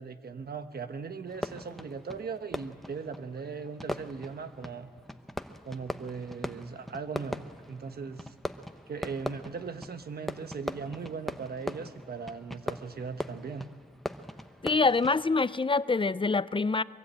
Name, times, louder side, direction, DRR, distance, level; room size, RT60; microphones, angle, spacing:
voice 1, 0.0-4.9 5.6-8.3 8.9-13.7, right 5 dB, 80° right, 9 dB, 1.1 m, -39 dB
Fireworks, 1.3-15.5, equal, ahead, 0.9 m, -40 dB
voice 2, 14.6-16.8, left 4 dB, 30° left, 16 dB, 0.5 m, -25 dB
23.5 x 23.0 x 8.8 m, 2.4 s
wide cardioid pair, 85°, 16 cm